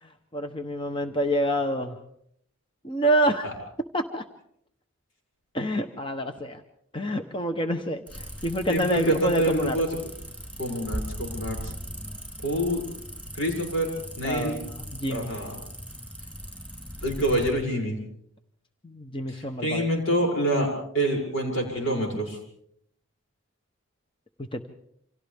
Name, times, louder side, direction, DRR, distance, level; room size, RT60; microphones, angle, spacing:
voice 1, 0.0-2.0 2.8-3.5 3.9-4.2 5.5-6.6 6.9-9.8 14.2-15.3 18.8-19.9 24.5-24.7, right 1 dB, 25° left, 6 dB, 0.9 m, -27 dB
sound 1, 8.1-17.5, equal, 5° left, 6.7 m, -39 dB
voice 2, 8.7-9.9 10.6-11.7 12.4-12.8 13.4-13.9 14.2-14.5 15.1-15.6 17.0-18.0 19.3-20.7 20.9-22.4, equal, 80° left, 0 dB, 6.8 m, -26 dB
29.0 x 26.5 x 3.5 m, 0.70 s
head